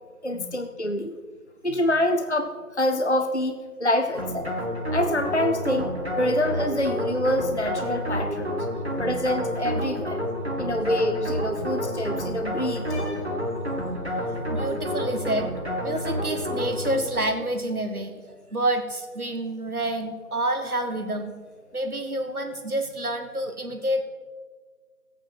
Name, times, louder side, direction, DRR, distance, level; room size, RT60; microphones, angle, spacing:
voice 1, 0.2-1.2 1.6-4.5 4.9-5.9 6.2-8.6 9.0-10.2 10.6-13.3, left 1 dB, 50° left, 6 dB, 0.6 m, -26 dB
sound 1, 4.2-17.4, equal, 45° right, 1.7 m, -29 dB
voice 2, 13.9-21.3 21.7-24.0, right 1 dB, 70° right, 6 dB, 1.6 m, -29 dB
15.0 x 8.8 x 4.5 m, 1.5 s
figure-of-eight pair, 180°, 45 cm